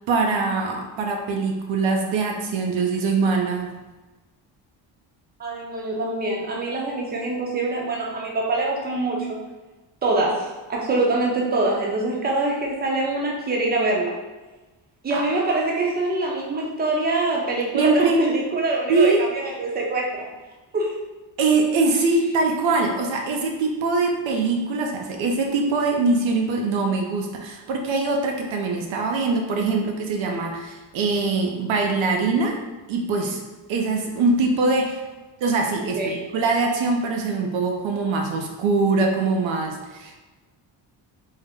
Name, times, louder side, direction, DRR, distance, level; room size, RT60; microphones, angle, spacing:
voice 1, 0.1-3.7 15.1-15.2 17.7-18.2 18.9-19.3 21.4-32.6 32.9-33.4 33.7-35.0 35.4-40.2, right 3 dB, 80° right, 2 dB, 0.7 m, -23 dB
voice 2, 5.4-9.4 10.0-14.1 15.0-20.3 20.7-20.9 35.9-36.2, right 2 dB, 20° right, -2 dB, 0.6 m, -24 dB
3.6 x 2.1 x 3.5 m, 1.2 s
cardioid pair, 125°, 46 cm